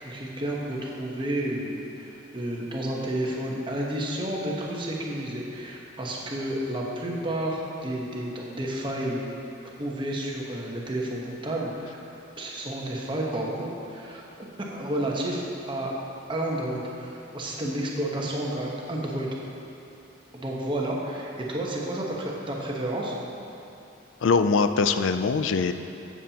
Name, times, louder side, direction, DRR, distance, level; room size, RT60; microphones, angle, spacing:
voice 1, 0.0-9.2 9.8-12.0 12.4-14.3 14.7-15.9 16.3-19.3 20.3-23.1, right 1 dB, 25° right, -3 dB, 1.1 m, -31 dB
voice 2, 24.2-25.7, left 4 dB, 80° left, 10 dB, 0.4 m, -22 dB
14.0 x 7.3 x 2.9 m, 2.8 s
head